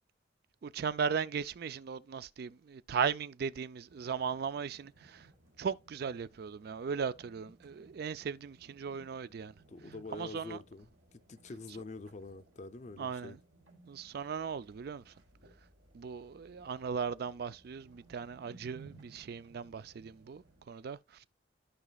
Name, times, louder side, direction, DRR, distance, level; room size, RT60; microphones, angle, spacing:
voice 1, 0.6-5.3 5.6-9.5 10.1-10.6 13.0-13.3 13.9-15.1 15.9-21.2, right 6 dB, 55° right, 0.4 m, -37 dB
sound 1, 3.9-20.6, right 3 dB, 85° right, 3.1 m, -61 dB
voice 2, 9.7-13.4, left 3 dB, 40° left, 0.5 m, -46 dB
14.0 x 4.9 x 2.3 m
head